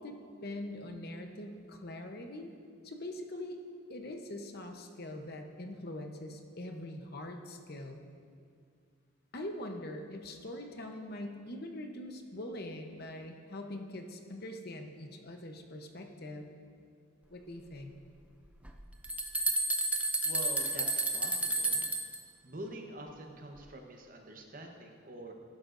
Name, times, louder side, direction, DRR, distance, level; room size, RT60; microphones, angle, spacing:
voice 1, 0.0-2.5 2.8-3.6 3.9-8.0 9.3-16.5 17.3-17.9, left 1 dB, 45° left, 4 dB, 0.8 m, -43 dB
sound 1, 18.7-18.8 19.0-22.2, right 2 dB, 5° right, 0.4 m, -31 dB
voice 2, 19.9-21.9 22.4-25.3, right 1 dB, 40° right, 2 dB, 1.0 m, -46 dB
15.5 x 12.0 x 2.6 m, 2.2 s
head